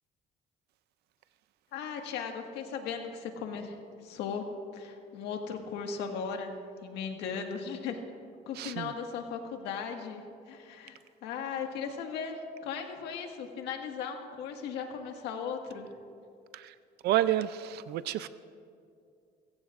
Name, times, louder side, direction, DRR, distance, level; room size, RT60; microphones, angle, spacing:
voice 1, 1.7-3.8 4.0-4.5 4.7-6.5 6.8-8.0 8.5-10.2 10.5-15.9, left 6 dB, 85° left, 3 dB, 1.8 m, -37 dB
voice 2, 8.6-8.9 16.5-16.7 17.0-18.3, right 12 dB, 75° right, 14 dB, 0.5 m, -29 dB
27.5 x 16.0 x 2.5 m, 2.4 s
cardioid pair, 110°, 17 cm